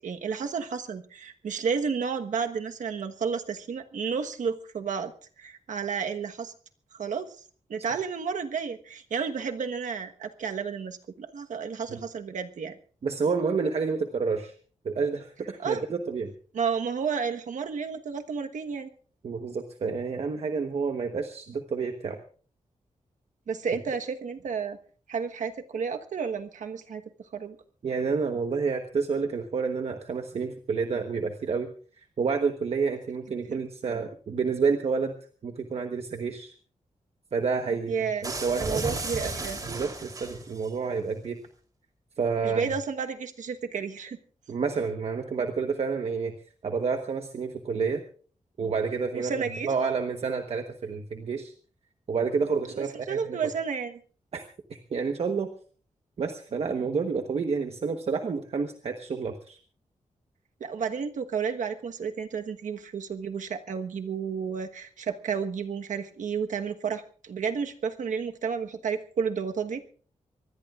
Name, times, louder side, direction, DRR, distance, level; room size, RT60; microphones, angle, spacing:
voice 1, 0.0-5.1 5.4-6.5 6.9-7.3 7.7-12.8 15.6-15.8 16.5-18.9 23.5-24.8 25.1-27.0 27.3-27.6 33.5-33.6 37.9-38.2 38.6-39.6 42.4-44.2 49.1-49.7 52.7-54.0 60.6-69.8, right 6 dB, 85° right, 6 dB, 1.3 m, -31 dB
voice 2, 13.0-14.5 14.8-16.3 19.2-22.2 27.8-31.7 32.0-35.1 35.4-36.5 37.3-38.9 39.2-39.3 39.6-41.4 42.2-42.7 44.5-46.3 46.6-48.0 48.6-49.3 49.6-51.5 52.1-53.4 54.3-54.4 54.7-55.5 56.2-59.6, right 5 dB, 55° right, 6 dB, 1.2 m, -29 dB
sound 1, 38.2-40.7, right 2 dB, 30° right, 3.4 m, -34 dB
25.0 x 20.0 x 2.5 m, 0.42 s
wide cardioid pair, 175°, 12 cm